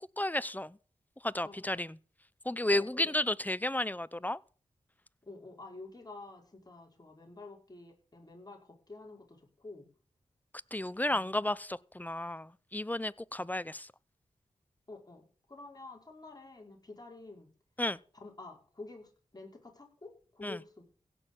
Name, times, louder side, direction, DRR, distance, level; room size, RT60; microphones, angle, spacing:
voice 1, 0.2-0.8 1.2-2.0 2.5-4.4 10.7-13.9 17.8-18.0 20.4-20.6, left 1 dB, 15° left, 0.7 m, -32 dB
voice 2, 1.4-1.9 2.7-3.2 5.2-9.9 11.1-11.3 14.9-17.5 18.1-20.8, left 3 dB, 30° left, 5.5 m, -49 dB
16.5 x 6.5 x 7.0 m
cardioid pair, 45°, 13 cm